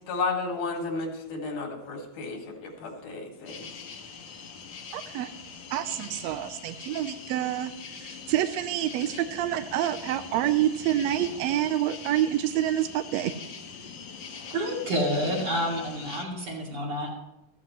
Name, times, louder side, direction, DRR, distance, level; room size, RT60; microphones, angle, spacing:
voice 1, 0.1-3.7, left 3 dB, 90° left, 2 dB, 3.6 m, -32 dB
sound 1, 3.5-16.3, left 6 dB, 60° left, 1.2 m, -43 dB
voice 2, 4.9-5.3 5.7-7.7 8.0-13.3, right 12 dB, 80° right, 10 dB, 1.6 m, -27 dB
voice 3, 14.3-17.1, equal, 55° right, 0 dB, 3.8 m, -29 dB
15.5 x 13.5 x 3.1 m, 0.88 s
omnidirectional pair, 3.5 m